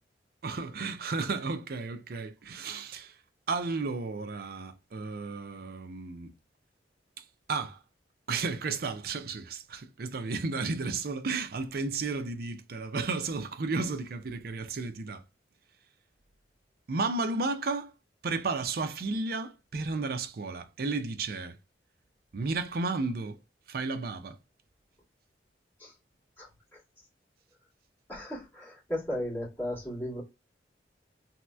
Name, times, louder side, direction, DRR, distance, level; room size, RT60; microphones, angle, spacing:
voice 1, 0.4-3.2 3.5-6.3 7.2-7.8 8.3-15.2 16.9-17.9 18.2-21.6 22.3-23.4 23.7-24.4, right 3 dB, 55° right, 0.5 m, -33 dB
voice 2, 26.4-26.8 28.1-30.2, left 1 dB, 15° left, 2.0 m, -36 dB
3.0 x 2.9 x 2.2 m
head